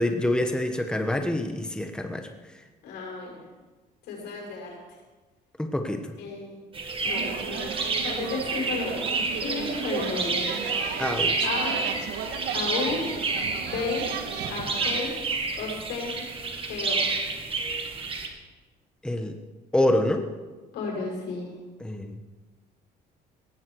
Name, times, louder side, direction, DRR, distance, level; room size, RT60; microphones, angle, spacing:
voice 1, 0.0-2.3 5.6-6.1 11.0-11.3 19.0-19.4 19.7-20.3 21.8-22.2, left 1 dB, 5° left, 5 dB, 1.3 m, -26 dB
voice 2, 2.8-3.4 4.1-4.8 6.2-6.6 7.0-9.0 9.3-10.5 11.4-11.9 12.5-13.0 13.6-14.1 14.5-15.1 15.6-16.1 16.5-17.1 20.7-21.5, left 4 dB, 85° left, -2 dB, 6.4 m, -33 dB
sound 1, 6.7-18.3, right 3 dB, 35° right, 2.3 m, -30 dB
sound 2, 7.0-15.0, right 7 dB, 75° right, 1.8 m, -35 dB
18.0 x 14.5 x 4.8 m, 1.3 s
cardioid pair, 110°, 17 cm